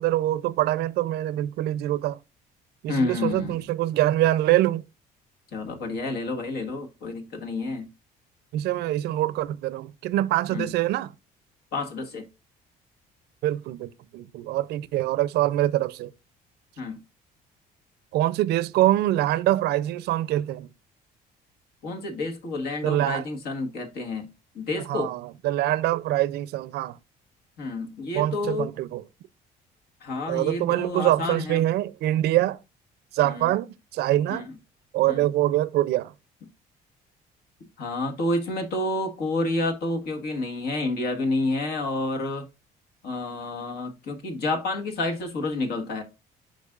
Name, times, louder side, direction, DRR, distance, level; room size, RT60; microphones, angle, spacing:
voice 1, 0.0-2.2 2.8-4.8 8.5-11.1 13.4-16.1 18.1-20.7 22.8-23.3 24.9-27.0 28.1-29.0 30.3-32.6 33.1-34.5 34.9-36.1, right 14 dB, 75° right, 0.5 m, -24 dB
voice 2, 2.9-3.5 5.5-7.9 10.5-10.7 11.7-12.3 16.8-17.0 21.8-24.3 24.5-25.1 27.6-28.7 30.0-31.6 33.2-33.5 34.3-34.4 35.1-35.2 37.8-42.4 43.0-46.0, left 2 dB, 70° left, 1.6 m, -29 dB
8.3 x 5.2 x 2.5 m
cardioid pair, 110°, 17 cm